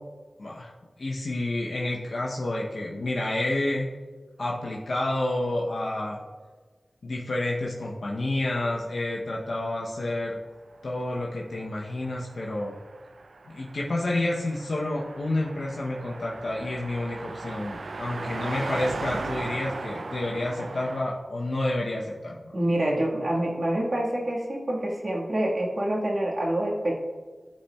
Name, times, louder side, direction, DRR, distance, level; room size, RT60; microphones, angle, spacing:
voice 1, 0.4-0.7 1.0-3.9 4.4-6.2 7.0-10.4 10.8-12.7 13.5-22.5, left 1 dB, 70° left, -3 dB, 0.7 m, -29 dB
Car passing by, 10.9-21.0, right 3 dB, 75° right, 0.3 m, -38 dB
voice 2, 22.5-26.9, right 1 dB, 60° right, -3 dB, 1.5 m, -26 dB
11.5 x 4.2 x 2.3 m, 1.4 s
wide cardioid pair, 60°, 0 cm